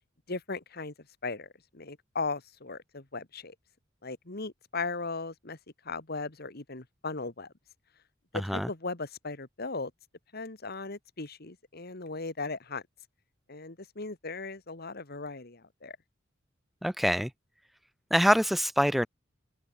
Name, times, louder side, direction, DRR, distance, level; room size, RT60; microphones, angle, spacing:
voice 1, 0.3-0.9 1.2-3.5 4.0-5.6 5.9-7.5 8.3-9.9 10.3-12.8 13.5-16.0, left 3 dB, 55° left, 2.1 m, -37 dB
voice 2, 16.8-17.3 18.1-19.1, equal, ahead, 0.8 m, -24 dB
open air
head